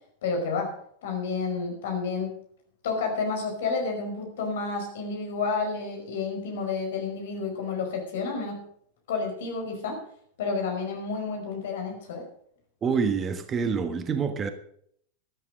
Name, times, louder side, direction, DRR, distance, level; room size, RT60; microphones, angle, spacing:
voice 1, 0.2-0.7 1.0-2.4 2.8-8.6 9.1-10.0 10.4-12.2, left 4 dB, 55° left, 3 dB, 5.3 m, -30 dB
voice 2, 12.8-14.5, right 5 dB, 25° right, 9 dB, 1.4 m, -26 dB
13.5 x 13.0 x 5.2 m, 0.65 s
figure-of-eight pair, 90°, 0 cm